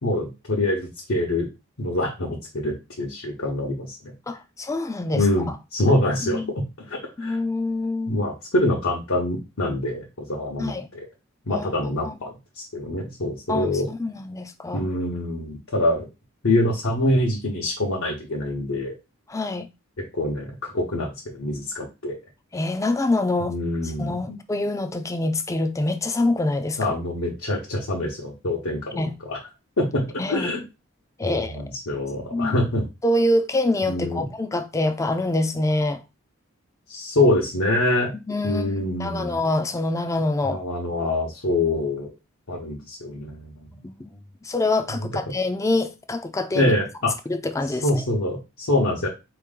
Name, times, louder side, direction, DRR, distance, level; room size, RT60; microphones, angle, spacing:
voice 1, 0.0-1.5 1.8-4.1 5.1-7.4 8.1-11.0 11.5-13.9 14.7-16.0 16.4-18.9 20.1-22.2 23.5-24.4 26.8-29.4 29.8-30.6 31.2-32.8 33.9-34.2 36.9-38.1 38.4-39.4 40.4-42.1 42.5-43.5 46.5-47.1 47.8-49.1, left 1 dB, 70° left, 1.0 m, -25 dB
voice 2, 4.3-5.6 6.2-6.6 7.2-8.2 10.6-10.9 11.5-12.2 13.5-14.8 19.3-19.7 22.5-23.6 23.8-27.0 28.9-29.1 30.2-30.5 31.2-31.6 32.3-32.6 33.0-36.0 38.1-40.6 43.7-46.7 47.3-48.0, left 2 dB, 15° left, 0.4 m, -26 dB
4.3 x 2.9 x 3.7 m
head